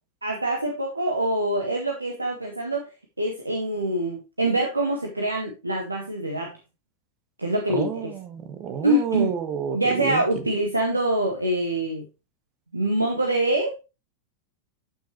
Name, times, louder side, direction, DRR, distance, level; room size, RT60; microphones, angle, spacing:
voice 1, 0.2-2.9 3.2-6.5 7.4-8.1 8.8-9.3 9.7-12.0 12.7-13.7, right 1 dB, 80° right, 1.6 m, -25 dB
voice 2, 7.7-10.2, right 8 dB, 35° right, 1.6 m, -30 dB
12.0 x 6.0 x 3.2 m
figure-of-eight pair, 90°, 0 cm